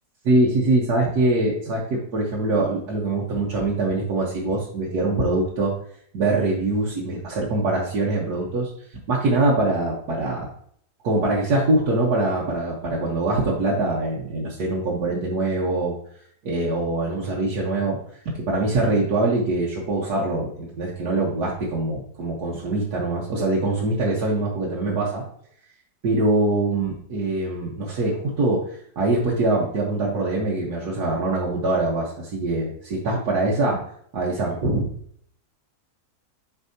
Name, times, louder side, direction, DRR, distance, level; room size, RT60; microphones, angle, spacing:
voice 1, 0.2-5.7 6.1-8.7 9.1-10.5 11.0-15.9 16.4-18.0 18.4-25.2 26.0-28.6 29.0-33.8 34.1-34.8, right 2 dB, 90° right, -5 dB, 1.7 m, -23 dB
8.3 x 4.8 x 2.8 m, 0.66 s
omnidirectional pair, 1.6 m